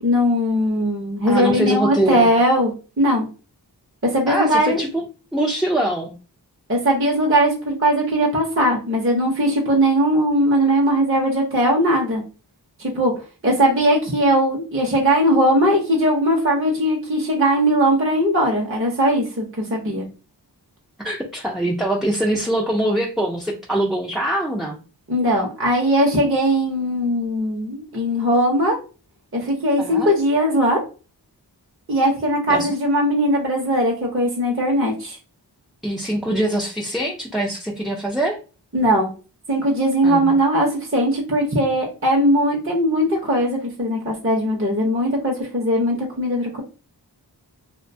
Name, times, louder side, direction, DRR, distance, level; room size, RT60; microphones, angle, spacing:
voice 1, 0.0-3.3 4.1-4.8 6.7-12.2 12.8-13.1 13.4-20.1 25.1-28.8 29.3-30.8 31.9-35.2 38.7-39.1 39.5-46.6, equal, 30° right, -1 dB, 0.7 m, -19 dB
voice 2, 1.3-2.3 4.3-4.9 5.3-6.1 21.0-24.8 29.8-30.1 32.5-32.7 35.8-38.4 40.0-40.3, right 1 dB, ahead, -2 dB, 0.4 m, -23 dB
2.6 x 2.2 x 2.6 m, 0.34 s
wide cardioid pair, 40°, 42 cm